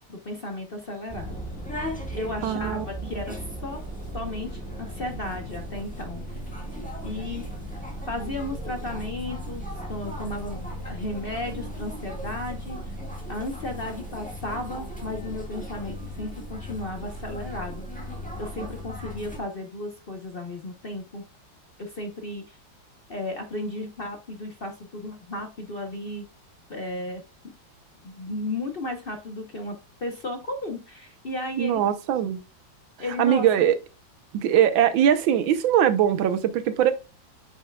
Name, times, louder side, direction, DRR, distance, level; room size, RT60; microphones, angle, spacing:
voice 1, 0.1-1.4 2.1-3.3 3.6-3.8 4.1-6.4 7.0-7.4 8.1-9.6 9.9-13.0 13.3-17.9 18.4-21.2 21.8-22.6 23.1-26.3 26.7-27.2 28.0-31.8 33.0-33.7, left 2 dB, 40° left, 0.9 m, -34 dB
sound 1, 1.1-19.4, equal, 5° left, 1.5 m, -36 dB
voice 2, 2.4-2.8 31.6-32.4 33.2-33.8 34.3-36.9, right 10 dB, 85° right, 1.6 m, -21 dB
8.6 x 5.8 x 2.3 m
omnidirectional pair, 2.1 m